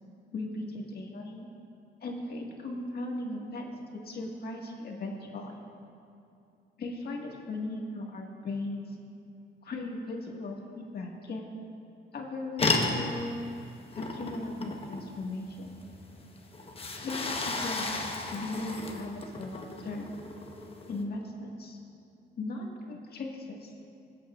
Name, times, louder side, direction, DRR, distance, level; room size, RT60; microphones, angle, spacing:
voice 1, 0.3-1.5 2.0-5.5 6.8-9.0 9.6-11.4 12.1-13.4 13.9-15.7 17.0-20.1 20.9-21.8 22.4-23.7, left 2 dB, 50° left, 0 dB, 1.9 m, -37 dB
sound 1, 12.6-21.0, left 3 dB, 30° left, 1.1 m, -34 dB
21.0 x 8.5 x 2.5 m, 2.6 s
cardioid pair, 90°, 20 cm